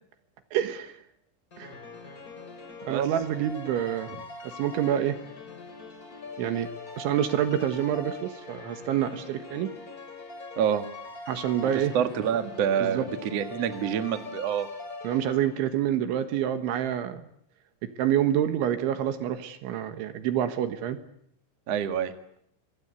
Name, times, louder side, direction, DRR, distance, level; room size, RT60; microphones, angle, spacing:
voice 1, 0.5-0.9 1.6-1.8 2.9-4.1 4.4-5.2 6.4-6.7 7.0-9.7 11.3-11.9 12.8-13.1 15.0-17.3 18.0-21.0, right 10 dB, 70° right, 9 dB, 3.6 m, -27 dB
sound 1, 1.5-15.8, left 3 dB, 25° left, 2.3 m, -42 dB
voice 2, 11.6-14.7 21.7-22.1, right 8 dB, 85° right, 8 dB, 1.4 m, -27 dB
26.0 x 23.5 x 8.4 m, 0.69 s
omnidirectional pair, 6.0 m